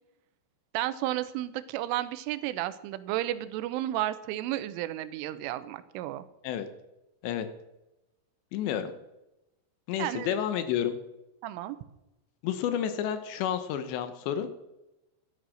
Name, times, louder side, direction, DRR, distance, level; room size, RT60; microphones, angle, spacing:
voice 1, 0.7-6.2 10.0-10.3 11.4-11.8, right 14 dB, 90° right, 14 dB, 3.3 m, -32 dB
voice 2, 8.5-8.9 9.9-11.0 12.4-14.6, left 9 dB, 75° left, 10 dB, 3.0 m, -30 dB
13.0 x 11.0 x 6.4 m, 0.94 s
omnidirectional pair, 5.5 m